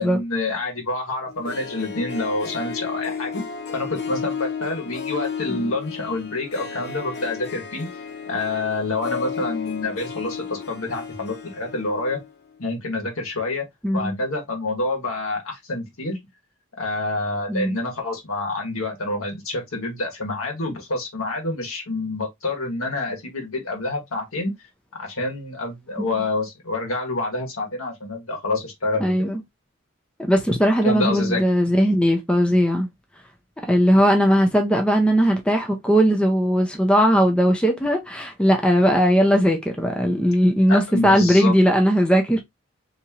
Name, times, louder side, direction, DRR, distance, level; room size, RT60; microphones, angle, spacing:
voice 1, 0.0-3.4 3.7-7.9 8.3-12.2 12.6-13.7 13.9-16.2 16.8-24.5 24.9-29.1 30.8-31.4 40.7-41.5, left 2 dB, 80° left, 1.4 m, -27 dB
Harp, 1.3-12.3 12.6-12.7, left 6 dB, 50° left, 0.7 m, -33 dB
voice 2, 13.8-14.2 17.5-17.8 26.0-26.1 29.0-29.4 30.2-32.9 33.7-42.4, equal, 5° left, 0.5 m, -18 dB
3.5 x 2.9 x 2.8 m
head